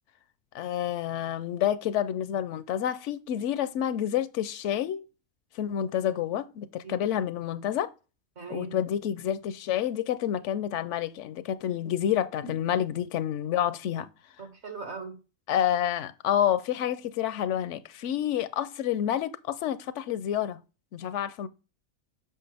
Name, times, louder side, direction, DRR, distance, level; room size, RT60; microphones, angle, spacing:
voice 1, 0.5-5.0 5.6-7.9 8.5-14.1 15.5-20.6 20.9-21.5, left 10 dB, 85° left, 0.9 m, -29 dB
voice 2, 8.4-8.8 12.4-12.5 14.4-15.1, right 4 dB, 65° right, 2.0 m, -39 dB
7.6 x 5.9 x 3.3 m
omnidirectional pair, 1.2 m